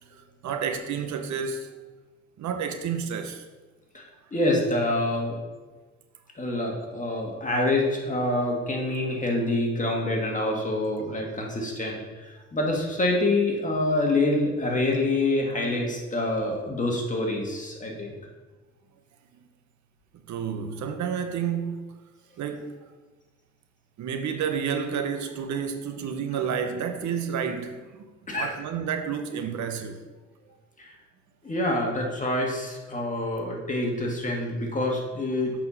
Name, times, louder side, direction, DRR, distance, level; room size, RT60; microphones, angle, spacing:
voice 1, 0.1-1.8 2.4-3.4 20.3-21.8 22.4-22.7 24.0-30.0, right 7 dB, 70° right, 0.8 m, -30 dB
voice 2, 4.3-5.4 6.4-12.0 12.5-18.1 28.3-28.5 30.8-30.9 31.4-35.5, left 2 dB, 25° left, 1.8 m, -26 dB
7.5 x 4.4 x 5.6 m
cardioid pair, 90°, 30 cm